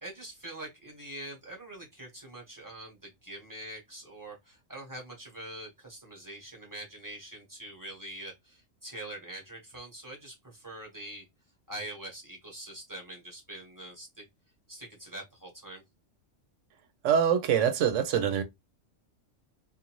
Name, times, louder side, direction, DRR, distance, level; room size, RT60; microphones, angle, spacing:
voice 1, 0.0-11.2 11.7-14.2 14.7-15.8, right 1 dB, 15° right, 1.0 m, -44 dB
voice 2, 17.0-18.4, right 8 dB, 75° right, 0.9 m, -24 dB
2.5 x 2.4 x 2.9 m
omnidirectional pair, 1.3 m